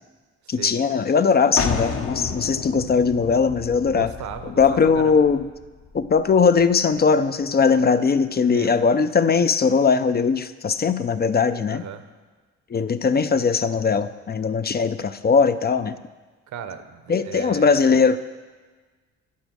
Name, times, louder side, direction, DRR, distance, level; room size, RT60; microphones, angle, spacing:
voice 1, 0.5-4.1 4.6-5.5 5.9-11.8 12.7-16.0 17.1-18.2, left 5 dB, 30° left, 11 dB, 0.5 m, -20 dB
sound 1, 1.6-7.1, left 5 dB, 50° left, 1.0 m, -32 dB
voice 2, 3.9-5.2 8.4-8.8 11.7-12.0 16.5-17.9, right 8 dB, 70° right, 10 dB, 1.0 m, -36 dB
9.1 x 8.4 x 6.2 m, 1.3 s
cardioid pair, 90°, 30 cm